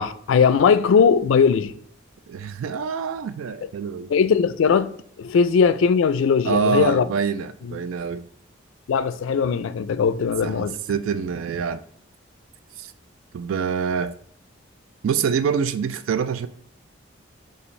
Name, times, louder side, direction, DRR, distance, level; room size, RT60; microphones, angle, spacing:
voice 1, 0.0-1.7 4.1-4.9 5.2-7.0 7.6-7.8 8.9-10.8, left 6 dB, 80° left, 0.3 m, -19 dB
voice 2, 2.3-4.1 6.5-8.2 10.4-11.8 12.8-12.9 13.3-14.2 15.0-16.5, right 6 dB, 90° right, 0.3 m, -25 dB
6.8 x 2.4 x 3.1 m
head